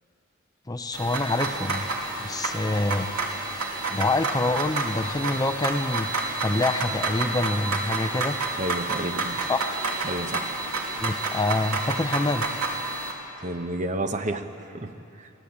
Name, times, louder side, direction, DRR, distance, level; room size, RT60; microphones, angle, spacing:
voice 1, 0.7-1.9 2.2-3.1 3.9-6.1 6.4-8.4 9.5-9.7 11.0-12.5, left 2 dB, 15° left, 8 dB, 0.6 m, -26 dB
sound 1, 0.9-13.1, right 3 dB, 85° right, 2.8 m, -29 dB
voice 2, 8.6-9.4 10.0-10.5 13.4-15.3, right 1 dB, 35° right, 8 dB, 0.9 m, -31 dB
23.0 x 17.0 x 8.7 m, 2.8 s
head